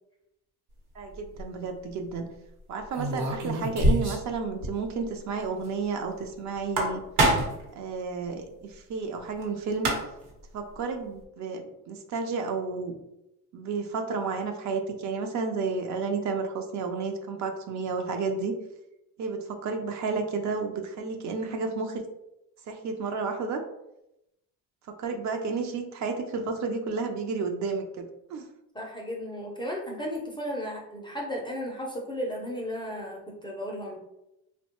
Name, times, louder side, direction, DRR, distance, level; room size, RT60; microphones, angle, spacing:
voice 1, 1.0-2.3 2.7-7.0 7.7-10.0 10.5-12.9 13.5-18.6 19.2-22.0 22.7-23.6 24.9-28.5, right 4 dB, 50° right, 5 dB, 0.4 m, -31 dB
sound 1, 1.1-1.4 2.9-4.3 4.6-4.7 5.0-5.1 6.5-7.7 9.4-9.5 9.7-10.3, right 1 dB, 80° right, 1.0 m, -25 dB
voice 2, 28.7-34.0, equal, 15° left, -1 dB, 0.4 m, -34 dB
3.0 x 2.1 x 2.8 m, 0.87 s
cardioid pair, 115°, 39 cm